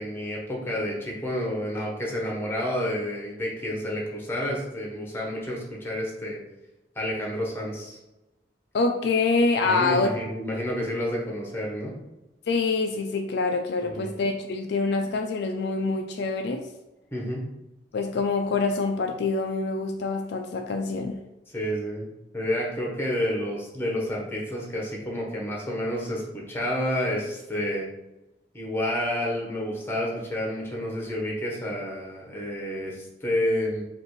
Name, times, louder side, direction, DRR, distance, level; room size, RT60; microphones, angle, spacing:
voice 1, 0.0-6.4 6.9-8.0 9.6-11.9 13.8-14.1 17.1-17.4 21.5-27.9 28.5-33.8, left 1 dB, 15° left, -2 dB, 1.1 m, -29 dB
voice 2, 8.7-10.1 12.5-16.6 17.9-21.2, left 3 dB, 65° left, 4 dB, 0.4 m, -25 dB
5.2 x 2.5 x 3.1 m, 0.96 s
head